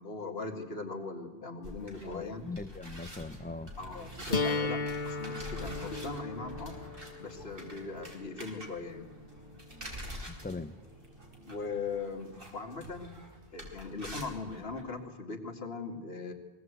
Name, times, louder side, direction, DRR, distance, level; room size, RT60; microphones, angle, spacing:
voice 1, 0.0-2.5 3.8-6.7 7.2-9.1 11.5-13.2 13.5-16.3, left 4 dB, 70° left, 4 dB, 2.3 m, -40 dB
sound 1, 1.6-14.8, equal, 60° right, 4.1 m, -47 dB
voice 2, 2.0-3.7 10.3-10.8, left 3 dB, 10° left, 13 dB, 0.6 m, -41 dB
sound 2, 4.3-10.3, left 3 dB, 50° left, 1.3 m, -37 dB
23.0 x 17.5 x 8.1 m, 1.4 s
omnidirectional pair, 1.1 m